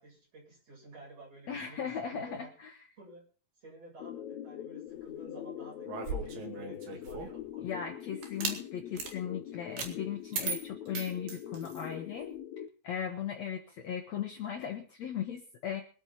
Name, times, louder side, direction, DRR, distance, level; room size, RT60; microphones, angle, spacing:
voice 1, 0.0-2.5 3.0-3.2 3.6-7.8, right 2 dB, 40° right, -2 dB, 9.0 m, -52 dB
voice 2, 1.5-2.8 7.6-15.8, left 8 dB, 60° left, 3 dB, 2.1 m, -38 dB
sound 1, 4.0-12.7, left 11 dB, 80° left, 1.6 m, -43 dB
sound 2, 5.9-7.4 8.2-8.6 9.0-9.1 9.8-9.9 10.3-11.9, right 5 dB, 70° right, 3.9 m, -37 dB
23.5 x 8.9 x 4.4 m, 0.39 s
omnidirectional pair, 4.2 m